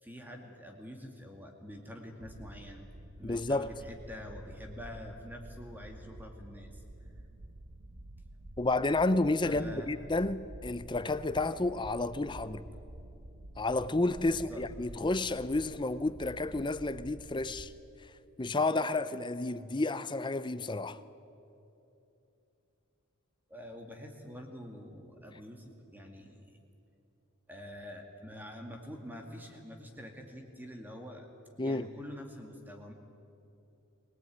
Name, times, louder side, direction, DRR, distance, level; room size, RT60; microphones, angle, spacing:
voice 1, 0.0-2.8 3.2-6.8 7.1-7.2 9.4-9.9 14.2-14.6 23.5-26.6 27.5-31.3 31.6-32.9, equal, 10° right, 2.3 m, -46 dB
sound 1, 2.2-17.8, right 1 dB, 70° right, 1.2 m, -49 dB
voice 2, 3.2-3.7 8.6-12.6 13.6-17.7 18.4-21.0 31.6-31.9, left 2 dB, 20° left, 0.6 m, -31 dB
23.5 x 18.5 x 9.3 m
head